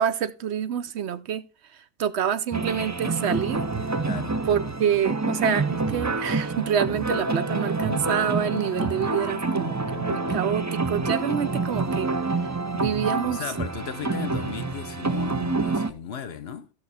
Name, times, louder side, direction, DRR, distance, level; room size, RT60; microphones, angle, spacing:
voice 1, 0.0-1.4 2.0-3.6 4.5-12.1 12.7-13.4, right 8 dB, 70° right, 0.9 m, -27 dB
sound 1, 2.5-15.9, right 3 dB, 25° right, 0.4 m, -27 dB
voice 2, 4.0-4.4 13.3-16.7, left 7 dB, 60° left, 1.0 m, -35 dB
13.5 x 6.2 x 4.2 m
omnidirectional pair, 1.2 m